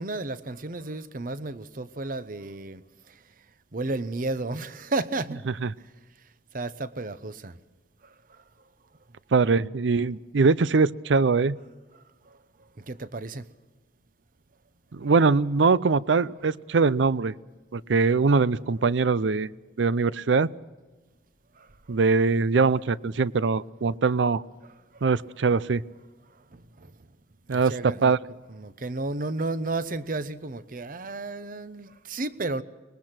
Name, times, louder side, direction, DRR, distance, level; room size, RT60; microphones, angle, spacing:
voice 1, 0.0-2.8 3.7-5.4 6.5-7.6 12.3-12.4 12.8-13.4 21.6-22.0 24.9-25.0 26.5-26.9 27.5-28.2 28.5-32.6, right 2 dB, 50° right, 14 dB, 0.8 m, -33 dB
voice 2, 9.3-11.6 14.9-17.3 17.7-19.5 19.8-20.5 21.9-24.4 25.0-25.8 27.5-28.2, right 4 dB, 85° right, 19 dB, 0.5 m, -22 dB
24.5 x 20.0 x 6.0 m, 1.3 s
head